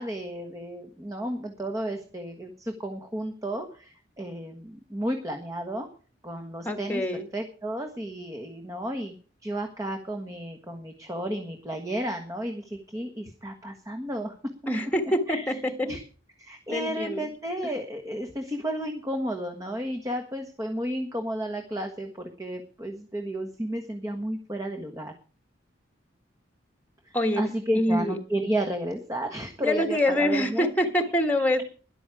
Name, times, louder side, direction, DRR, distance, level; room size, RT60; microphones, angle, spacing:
voice 1, 0.0-5.9 6.2-7.0 7.3-14.3 15.3-15.6 15.9-16.0 16.4-25.1 27.0-30.7, right 1 dB, 15° right, 4 dB, 1.4 m, -32 dB
voice 2, 6.6-7.3 14.7-15.9 16.7-17.3 27.1-27.4 27.7-28.2 29.6-31.6, left 1 dB, 10° left, 6 dB, 1.5 m, -25 dB
13.0 x 11.0 x 4.9 m, 0.39 s
head